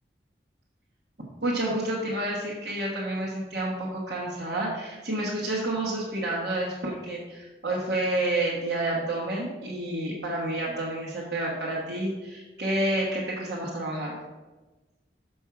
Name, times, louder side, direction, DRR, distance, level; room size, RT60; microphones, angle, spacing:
voice 1, 1.4-14.2, right 1 dB, 70° right, -5 dB, 1.2 m, -29 dB
7.2 x 5.4 x 4.7 m, 1.2 s
head